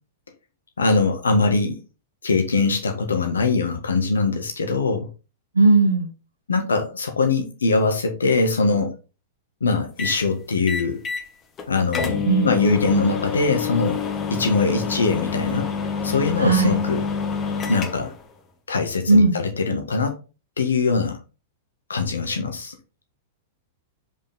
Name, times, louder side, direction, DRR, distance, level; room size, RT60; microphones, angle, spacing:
voice 1, 0.8-1.8 2.2-5.1 6.5-8.9 9.6-11.0 11.7-14.0 14.3-15.7 16.0-17.0 17.7-18.1 18.7-20.2 20.6-21.2 21.9-22.7, left 3 dB, 75° left, 1.5 m, -22 dB
voice 2, 5.5-6.1 12.3-12.5 16.4-16.8 19.1-19.3, right 3 dB, 80° right, 1.3 m, -16 dB
sound 1, 10.0-10.2 10.7-11.3 11.6-11.7 11.9-18.2, left 6 dB, 25° left, 1.3 m, -27 dB
5.1 x 4.9 x 3.8 m
figure-of-eight pair, 100°, 0 cm